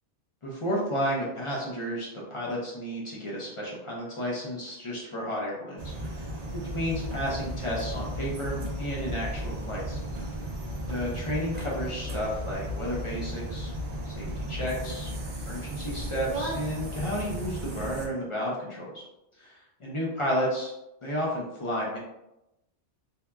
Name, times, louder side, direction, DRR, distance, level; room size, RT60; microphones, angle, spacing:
voice 1, 0.4-6.3 6.7-10.0 10.9-13.7 14.1-15.1 15.5-19.0 19.4-20.7 21.0-22.0, equal, 45° left, -5 dB, 0.4 m, -32 dB
sound 1, 5.8-18.1, equal, 60° right, 0.4 m, -35 dB
2.8 x 2.2 x 2.2 m, 0.90 s
omnidirectional pair, 1.2 m